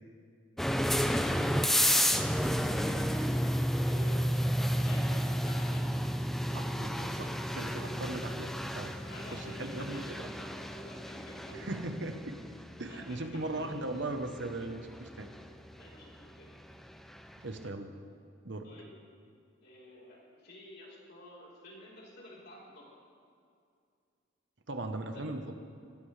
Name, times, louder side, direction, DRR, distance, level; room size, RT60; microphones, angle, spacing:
sound 1, 0.6-17.3, equal, ahead, 0.4 m, -32 dB
voice 1, 1.1-6.0 6.4-8.0 9.0-11.7 12.7-13.9 15.7-16.5 18.6-19.0 19.6-22.9 25.1-25.2, equal, 55° left, -5 dB, 4.1 m, -51 dB
voice 2, 6.5-8.9 9.3-10.3 11.5-12.4 12.8-15.3 17.4-17.9 18.4-18.7 24.7-25.6, right 2 dB, 65° right, 6 dB, 1.0 m, -38 dB
20.0 x 16.5 x 3.3 m, 2.3 s
head